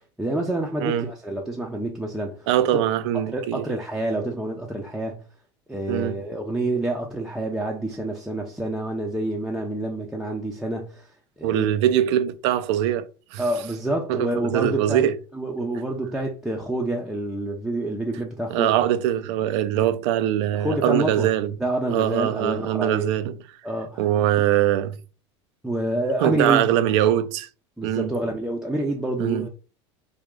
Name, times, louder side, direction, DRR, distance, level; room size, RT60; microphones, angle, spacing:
voice 1, 0.2-2.8 3.3-5.2 5.7-11.1 11.4-11.7 13.4-15.1 15.3-18.8 19.8-19.9 20.5-21.3 21.6-23.1 23.6-24.1 25.6-26.7 27.8-29.5, right 1 dB, 5° right, 0.6 m, -28 dB
voice 2, 2.5-3.7 5.9-6.2 11.4-13.4 14.1-15.2 18.5-21.5 21.9-23.4 24.0-25.0 26.2-27.5 27.8-28.1 29.2-29.5, right 11 dB, 70° right, 0.5 m, -22 dB
3.4 x 2.3 x 3.7 m
supercardioid pair, 105°, 15 cm